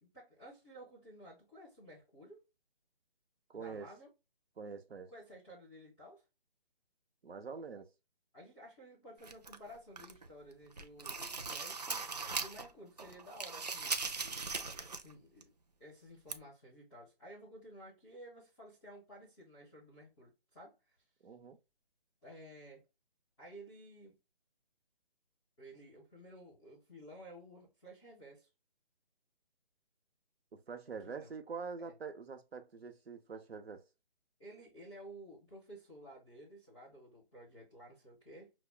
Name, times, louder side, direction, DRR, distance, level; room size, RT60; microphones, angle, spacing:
voice 1, 0.0-2.4 3.5-4.1 5.1-6.2 8.3-12.1 12.4-14.0 15.0-15.5 15.8-20.8 22.2-22.8 23.4-24.2 25.6-28.5 31.0-31.3 31.8-31.9 34.4-38.5, equal, ahead, 0.7 m, -54 dB
voice 2, 3.5-3.9 4.6-5.1 7.2-7.9 21.2-21.6 30.5-33.8, right 5 dB, 85° right, 0.9 m, -45 dB
sound 1, 9.2-10.3 10.6-12.7 13.0-15.1 15.4-15.5 16.3-16.4, right 4 dB, 45° right, 0.4 m, -39 dB
6.1 x 2.1 x 2.3 m
hypercardioid pair, 175°, 30 cm